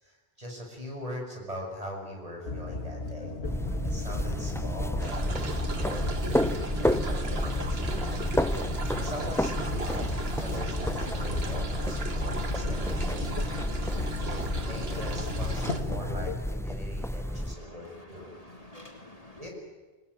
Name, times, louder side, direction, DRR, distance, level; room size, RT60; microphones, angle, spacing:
voice 1, 0.0-3.4 3.8-6.1 6.9-8.1 8.6-13.5 14.2-18.2 19.4-19.5, equal, 35° right, 0 dB, 6.8 m, -41 dB
sound 1, 2.5-16.4, left 3 dB, 70° left, 2.0 m, -35 dB
sound 2, 3.4-17.5, equal, 5° left, 0.6 m, -31 dB
sound 3, 5.0-15.8, right 4 dB, 70° right, 1.7 m, -39 dB
voice 2, 17.1-19.5, left 1 dB, 35° left, 2 dB, 3.2 m, -50 dB
26.5 x 21.5 x 9.9 m, 1.2 s
omnidirectional pair, 1.1 m